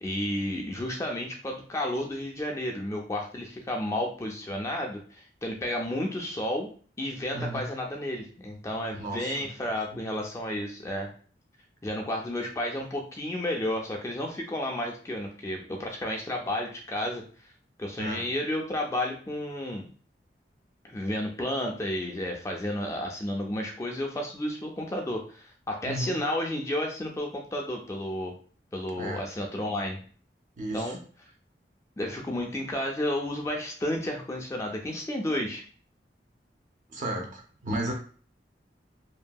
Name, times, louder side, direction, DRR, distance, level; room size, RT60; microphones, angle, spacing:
voice 1, 0.0-6.7 7.0-11.1 11.8-17.2 17.8-19.9 20.8-28.3 28.7-30.0 30.7-31.0 32.0-35.6, left 1 dB, 15° left, 0 dB, 0.3 m, -32 dB
voice 2, 7.3-7.6 8.9-9.5 9.9-10.0 18.0-18.2 25.8-26.2 29.0-29.2 30.6-31.0 36.9-37.9, right 1 dB, 45° right, 2 dB, 0.6 m, -34 dB
2.6 x 2.6 x 2.2 m, 0.42 s
head